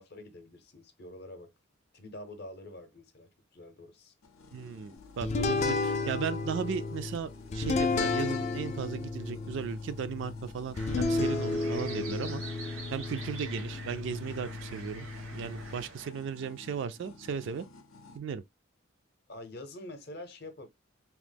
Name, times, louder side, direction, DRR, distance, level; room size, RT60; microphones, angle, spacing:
voice 1, 0.0-1.5 1.9-4.1 19.3-20.7, left 1 dB, 50° left, 0.7 m, -46 dB
sound 1, 4.2-18.2, left 3 dB, 85° left, 0.6 m, -54 dB
voice 2, 4.5-12.4 12.9-17.7 18.1-18.4, right 6 dB, 60° right, 0.3 m, -36 dB
sound 2, 5.2-15.9, left 3 dB, 35° left, 0.3 m, -33 dB
sound 3, 10.7-16.1, right 4 dB, 90° right, 0.9 m, -46 dB
3.0 x 2.0 x 3.3 m
head